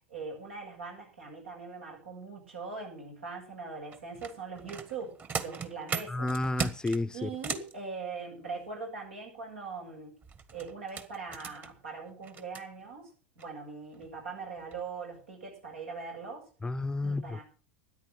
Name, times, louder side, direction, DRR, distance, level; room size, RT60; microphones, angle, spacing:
voice 1, 0.1-6.3 7.1-10.1 10.5-13.1 13.4-16.5 17.0-17.4, right 4 dB, 85° right, 7.7 m, -41 dB
sound 1, 3.9-7.7 10.2-12.6 13.4-13.5 13.9-14.1 14.6-14.8 15.2-15.3, right 6 dB, 30° right, 1.8 m, -38 dB
voice 2, 6.1-7.3 16.6-17.4, left 2 dB, 10° left, 0.6 m, -31 dB
13.5 x 10.0 x 6.4 m
hypercardioid pair, 85°, 6 cm